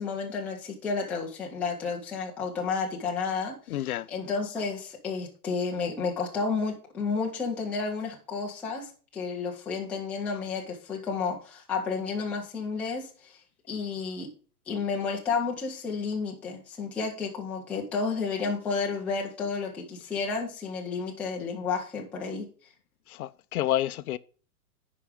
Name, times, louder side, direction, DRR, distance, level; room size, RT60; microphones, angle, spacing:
voice 1, 0.0-3.6 4.1-13.4 13.7-14.3 14.7-22.5, left 5 dB, 5° left, 0.4 m, -31 dB
voice 2, 3.7-4.1 23.1-24.2, left 13 dB, 65° left, 0.6 m, -29 dB
10.0 x 4.9 x 5.0 m
hypercardioid pair, 140°, 47 cm